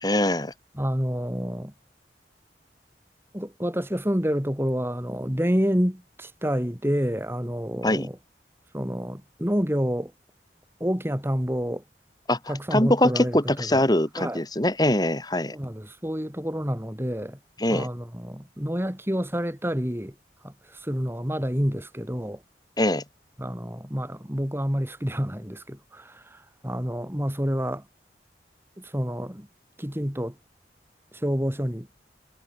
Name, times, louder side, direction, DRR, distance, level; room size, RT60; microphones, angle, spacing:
voice 1, 0.0-0.5 7.8-8.1 12.3-15.5 17.6-17.9 22.8-23.0, left 1 dB, 20° left, 3.1 m, -23 dB
voice 2, 0.8-1.7 3.3-8.2 8.7-10.1 10.8-11.8 12.5-13.8 14.2-14.4 15.5-17.4 17.7-20.1 20.4-20.5 20.8-22.4 23.4-26.2 26.6-27.8 28.8-29.5 29.8-30.4 31.2-31.9, equal, 15° right, 3.4 m, -28 dB
head